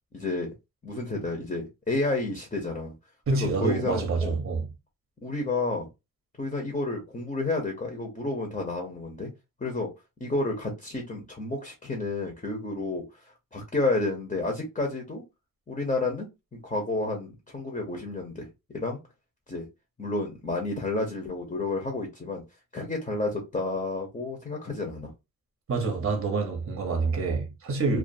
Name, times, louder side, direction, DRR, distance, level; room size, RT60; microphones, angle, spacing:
voice 1, 0.1-0.5 0.8-2.9 3.4-4.4 5.2-5.9 6.4-9.3 9.6-9.9 10.2-15.2 15.7-16.3 16.6-18.5 18.7-19.0 19.5-19.7 20.0-22.4 22.7-25.1, left 2 dB, 20° left, 0.7 m, -30 dB
voice 2, 3.3-4.7 25.7-28.0, right 4 dB, 40° right, 0.7 m, -27 dB
2.4 x 2.4 x 2.6 m
wide cardioid pair, 135°, 35 cm